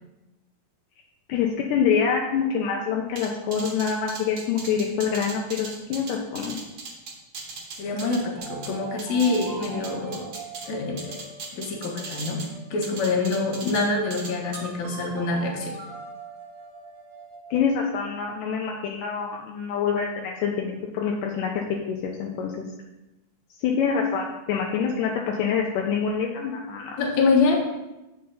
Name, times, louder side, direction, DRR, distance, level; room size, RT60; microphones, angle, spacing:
voice 1, 1.3-6.6 17.5-21.5 21.9-22.7 23.6-26.9, left 6 dB, 80° left, -1 dB, 2.2 m, -26 dB
sound 1, 3.2-8.7 9.0-10.7 11.0-12.5 12.8-13.8 14.1-14.6, right 4 dB, 50° right, 1.7 m, -38 dB
voice 2, 7.8-10.3 10.7-11.2 11.5-12.4 12.7-15.8 27.0-27.6, left 3 dB, 65° left, 1 dB, 2.4 m, -25 dB
sound 2, 8.4-17.8, right 4 dB, 90° right, 2.9 m, -42 dB
8.0 x 6.6 x 4.0 m, 0.98 s
omnidirectional pair, 4.0 m